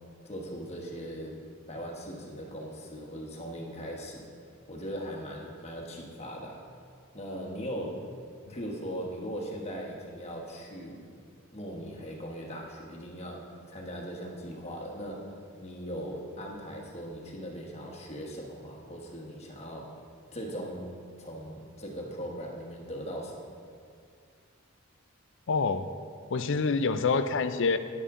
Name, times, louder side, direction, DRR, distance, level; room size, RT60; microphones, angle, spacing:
voice 1, 0.2-1.4 1.7-4.2 4.7-6.7 7.1-8.0 8.5-11.1 11.5-19.9 20.3-20.9 21.2-23.5, equal, 30° left, 0 dB, 1.3 m, -39 dB
voice 2, 25.5-25.9 26.3-27.8, left 4 dB, 60° left, 11 dB, 0.5 m, -26 dB
11.0 x 9.8 x 3.7 m, 2.3 s
head